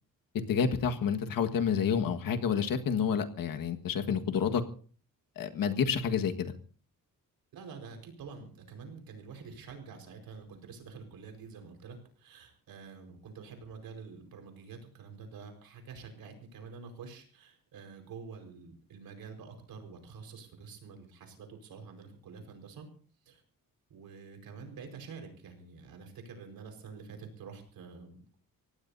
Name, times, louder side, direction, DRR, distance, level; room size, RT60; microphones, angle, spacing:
voice 1, 0.5-4.6 5.3-6.5, left 7 dB, 75° left, 6 dB, 1.7 m, -29 dB
voice 2, 7.5-22.9 23.2-23.4 23.9-28.3, right 5 dB, 85° right, 4 dB, 4.8 m, -47 dB
25.5 x 17.0 x 2.7 m, 0.43 s
cardioid pair, 135°, 34 cm